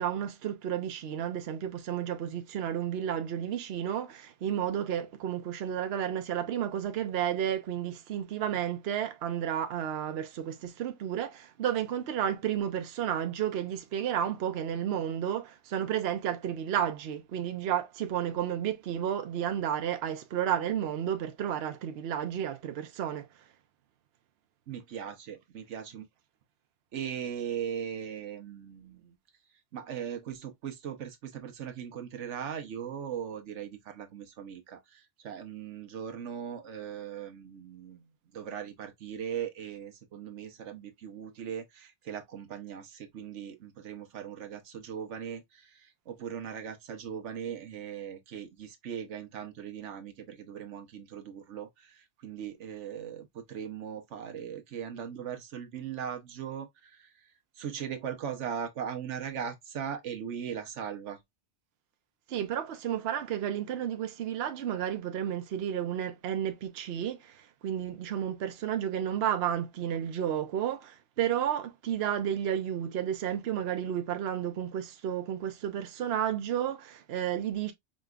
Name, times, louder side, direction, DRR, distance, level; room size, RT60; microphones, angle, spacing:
voice 1, 0.0-23.3 62.3-77.7, right 9 dB, 65° right, 0.9 m, -32 dB
voice 2, 24.7-26.0 26.9-29.2 29.7-38.0 38.3-57.1 57.6-61.2, right 8 dB, 85° right, 1.2 m, -39 dB
5.0 x 3.1 x 2.3 m
omnidirectional pair, 1.2 m